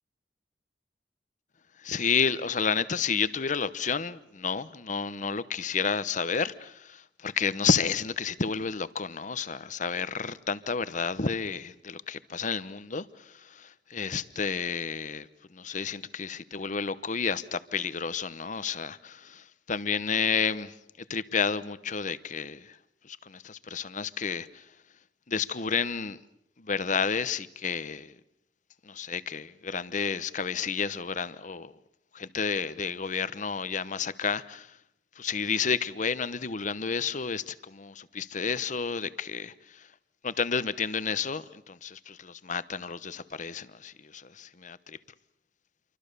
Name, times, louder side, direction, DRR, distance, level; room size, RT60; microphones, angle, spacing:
voice 1, 1.8-13.1 13.4-15.3 15.5-20.7 21.1-22.8 23.1-24.6 25.3-26.2 26.6-28.1 28.8-31.7 32.1-34.7 35.2-39.5 40.2-45.0, left 5 dB, 45° left, 0.9 m, -31 dB
28.0 x 24.0 x 6.8 m
head